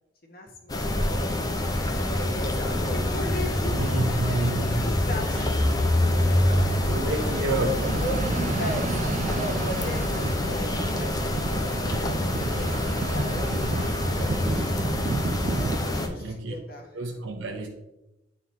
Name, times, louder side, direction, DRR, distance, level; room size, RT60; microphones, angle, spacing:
voice 1, 0.2-1.4 1.7-5.7 6.2-7.3 7.9-9.0 9.3-12.7 13.1-15.0 15.5-17.3, equal, 50° left, 2 dB, 1.4 m, -38 dB
sound 1, 0.7-16.1, left 1 dB, 20° left, 0.7 m, -26 dB
voice 2, 3.7-4.9 5.3-5.5 6.8-7.9 16.1-16.5 16.9-17.7, right 2 dB, 85° right, 1 dB, 0.8 m, -29 dB
sound 2, 5.9-16.0, right 3 dB, 40° right, 0.3 m, -32 dB
9.3 x 4.0 x 4.2 m, 0.94 s
head